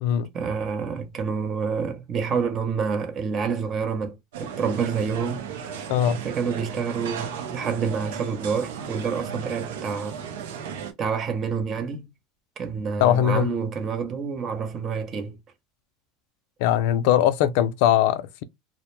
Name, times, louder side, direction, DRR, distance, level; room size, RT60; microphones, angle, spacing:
voice 1, 0.3-5.9 6.2-10.2 11.0-12.1 12.6-15.4, right 6 dB, 35° right, 0.6 m, -28 dB
sound 1, 4.3-10.9, right 7 dB, 85° right, 0.5 m, -35 dB
voice 2, 5.9-6.2 13.0-13.5 16.6-18.4, left 11 dB, 70° left, 0.3 m, -21 dB
2.1 x 2.0 x 3.0 m
supercardioid pair, 115°, 0 cm